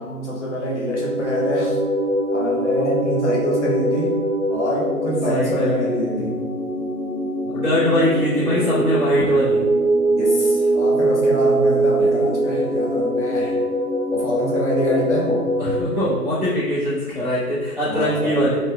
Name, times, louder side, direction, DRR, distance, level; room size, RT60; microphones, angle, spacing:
voice 1, 0.0-1.8 2.3-4.1 4.5-6.4 10.1-13.6 14.1-15.5 17.9-18.5, equal, 50° left, -4 dB, 0.6 m, -25 dB
sound 1, 0.8-15.8, right 1 dB, 40° right, 0.7 m, -22 dB
voice 2, 5.3-6.3 7.5-9.6 15.6-18.6, equal, ahead, -23 dB, 0.7 m, -22 dB
4.0 x 2.0 x 2.4 m, 1.4 s
figure-of-eight pair, 150°, 47 cm